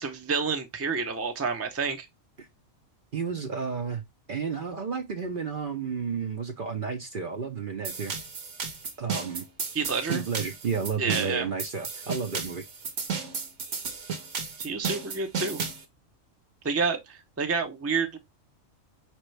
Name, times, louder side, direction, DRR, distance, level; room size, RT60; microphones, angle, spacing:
voice 1, 0.0-2.1 9.7-10.2 11.0-11.5 14.6-15.6 16.6-18.2, right 5 dB, 15° right, 0.5 m, -29 dB
voice 2, 3.1-4.0 4.3-8.1 9.0-9.5 10.1-12.6, right 5 dB, 50° right, 0.7 m, -32 dB
sound 1, 7.8-15.8, right 5 dB, 65° right, 1.3 m, -34 dB
5.1 x 3.0 x 3.1 m
omnidirectional pair, 1.3 m